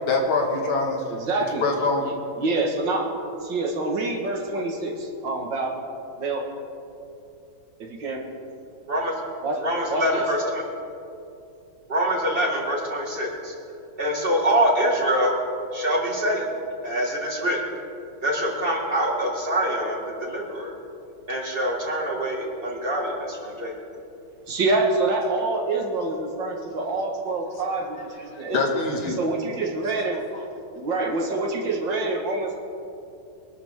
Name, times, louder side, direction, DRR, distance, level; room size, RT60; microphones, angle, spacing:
voice 1, 0.1-1.0 1.6-2.1 28.3-29.2 30.3-30.4, left 3 dB, 85° left, 1 dB, 2.7 m, -24 dB
voice 2, 1.1-1.6 2.0-3.1 3.4-5.8 6.2-6.5 7.8-8.2 9.4-9.6 9.9-10.3 24.5-28.8 29.1-30.2 30.7-32.6, right 2 dB, 65° right, 1 dB, 2.2 m, -26 dB
voice 3, 9.6-10.6 11.9-13.5 14.0-15.4 15.7-16.5 16.8-17.6 18.2-20.7 21.3-23.7, equal, 25° right, -1 dB, 2.2 m, -25 dB
23.0 x 12.0 x 3.7 m, 2.8 s
omnidirectional pair, 2.2 m